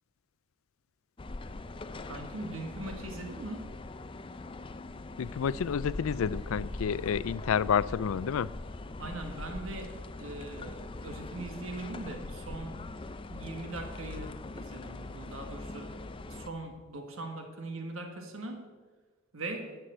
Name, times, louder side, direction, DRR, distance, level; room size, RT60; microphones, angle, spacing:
sound 1, 1.2-16.5, left 2 dB, 25° left, 0.5 m, -42 dB
voice 1, 2.0-3.7 9.0-12.9 13.3-16.0 16.3-18.7 19.3-19.8, right 2 dB, 75° right, 1.5 m, -41 dB
voice 2, 5.2-8.5, left 7 dB, 80° left, 0.4 m, -29 dB
11.5 x 7.7 x 7.8 m
head